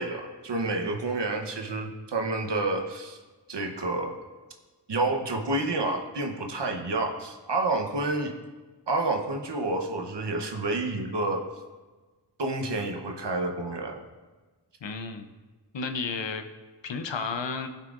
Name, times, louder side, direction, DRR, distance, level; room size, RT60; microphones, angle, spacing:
voice 1, 0.0-3.2 3.5-4.1 4.9-8.3 8.9-11.5 12.4-14.0, right 2 dB, 70° right, 3 dB, 1.0 m, -29 dB
voice 2, 14.8-15.3 15.7-16.4 16.8-17.7, left 4 dB, 85° left, 8 dB, 0.7 m, -32 dB
16.0 x 5.7 x 2.5 m, 1.3 s
wide cardioid pair, 60°, 43 cm